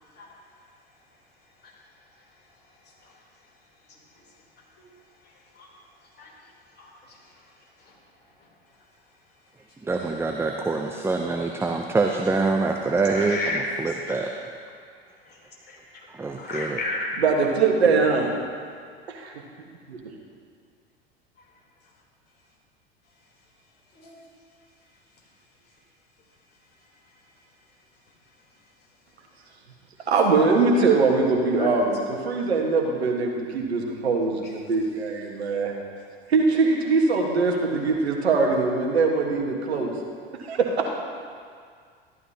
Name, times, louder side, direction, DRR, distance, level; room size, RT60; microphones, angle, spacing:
voice 1, 9.8-14.3 16.2-16.8, right 3 dB, 10° right, 3 dB, 0.6 m, -25 dB
voice 2, 13.0-13.6 14.1-14.5 15.3-15.4 15.7-17.2 23.9-24.2 31.6-31.8, left 2 dB, 30° left, -3 dB, 3.4 m, -33 dB
voice 3, 17.2-18.3 19.1-19.3 19.9-20.0 30.1-35.7 36.3-39.9 40.4-40.9, right 4 dB, 80° right, 1 dB, 1.5 m, -22 dB
14.0 x 12.5 x 2.8 m, 2.1 s
figure-of-eight pair, 80°, 32 cm